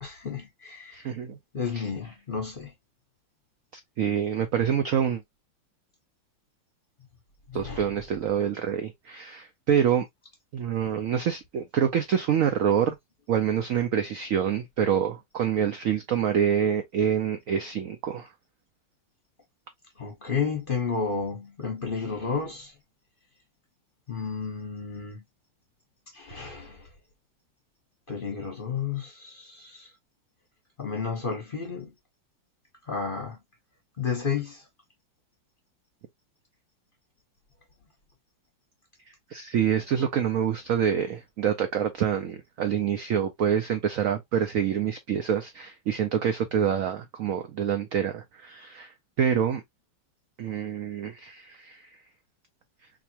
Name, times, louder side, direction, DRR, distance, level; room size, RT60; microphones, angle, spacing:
voice 1, 0.0-1.1 1.5-2.7 7.5-7.9 20.0-22.7 24.1-25.2 26.1-26.9 28.1-29.9 30.8-31.9 32.9-33.4 34.0-34.6, left 5 dB, 35° left, 0.9 m, -32 dB
voice 2, 0.9-1.4 1.7-1.9 4.0-5.2 7.5-10.1 10.5-13.0 13.3-18.3 39.3-49.6 50.4-51.9, right 8 dB, 80° right, 0.7 m, -26 dB
4.0 x 2.8 x 2.8 m
omnidirectional pair, 2.1 m